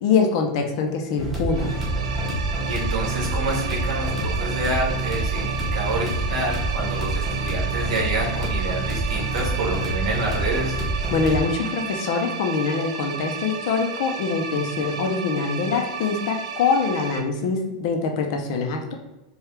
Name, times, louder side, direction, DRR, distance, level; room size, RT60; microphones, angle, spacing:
voice 1, 0.0-1.7 11.1-18.9, left 5 dB, 40° left, 3 dB, 0.6 m, -24 dB
sound 1, 1.2-11.4, right 2 dB, ahead, 0.8 m, -27 dB
sound 2, 1.5-17.2, right 6 dB, 85° right, 0.6 m, -33 dB
voice 2, 2.6-10.8, right 2 dB, 70° right, -2 dB, 1.5 m, -28 dB
4.6 x 2.3 x 3.2 m, 1.0 s
supercardioid pair, 180°, 3 cm